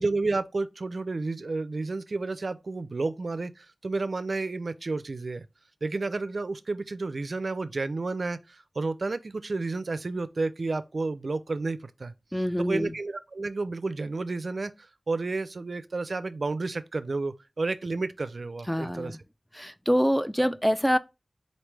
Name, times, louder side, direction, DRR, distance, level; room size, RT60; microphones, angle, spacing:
voice 1, 0.0-5.4 5.8-12.1 12.6-14.7 15.1-19.2, right 3 dB, 75° right, 0.4 m, -31 dB
voice 2, 12.3-13.0 18.7-19.2 19.5-21.0, equal, 5° left, 0.4 m, -25 dB
4.1 x 3.0 x 3.3 m
wide cardioid pair, 45°, 0 cm